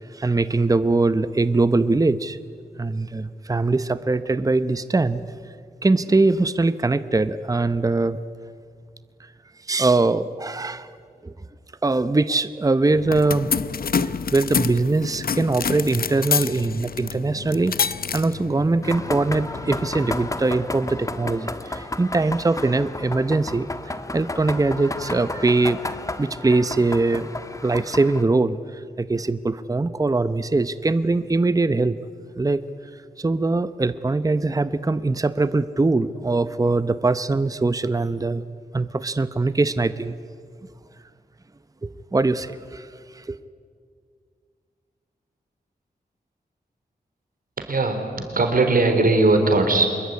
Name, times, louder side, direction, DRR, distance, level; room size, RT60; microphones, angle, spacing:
voice 1, 0.1-2.4 2.8-5.2 5.8-8.2 9.7-10.9 11.2-11.3 11.8-13.5 14.0-23.7 24.1-27.3 27.6-32.0 32.4-32.6 33.2-38.4 38.7-40.1 41.8-42.9 43.1-43.4, right 3 dB, 20° right, 13 dB, 0.8 m, -22 dB
sound 1, 12.9-20.3, left 6 dB, 65° left, 0.7 m, -28 dB
sound 2, 18.8-28.2, left 2 dB, 20° left, 1.3 m, -32 dB
voice 2, 47.6-49.9, right 2 dB, 60° right, 5 dB, 4.0 m, -19 dB
26.0 x 21.5 x 9.7 m, 2.1 s
wide cardioid pair, 95°, 16 cm